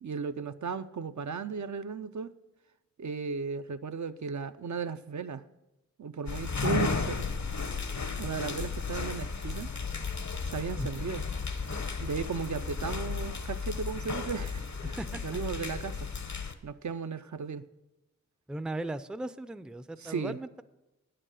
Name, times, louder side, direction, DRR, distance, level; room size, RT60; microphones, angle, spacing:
voice 1, 0.0-2.3 3.0-5.4 6.0-7.3 8.2-9.7 10.4-11.2 12.0-15.0 15.2-16.1 16.6-17.6 20.0-20.4, right 5 dB, 70° right, 11 dB, 0.5 m, -35 dB
sound 1, 6.3-16.5, left 4 dB, 65° left, 0.8 m, -34 dB
voice 2, 15.0-15.4 18.5-20.6, right 1 dB, 5° right, 13 dB, 0.4 m, -37 dB
9.9 x 7.8 x 6.3 m, 0.97 s
wide cardioid pair, 60°, 31 cm